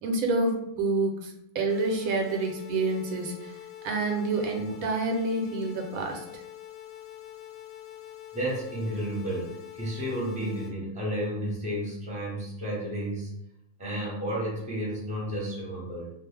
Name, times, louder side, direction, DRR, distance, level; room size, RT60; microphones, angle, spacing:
voice 1, 0.0-3.6 3.8-6.4, right 2 dB, 85° right, 3 dB, 1.0 m, -28 dB
sound 1, 1.7-10.7, left 12 dB, 60° left, 0.5 m, -45 dB
voice 2, 8.3-13.3 13.8-16.1, right 1 dB, 5° right, -5 dB, 0.7 m, -32 dB
2.4 x 2.3 x 3.2 m, 0.79 s
omnidirectional pair, 1.4 m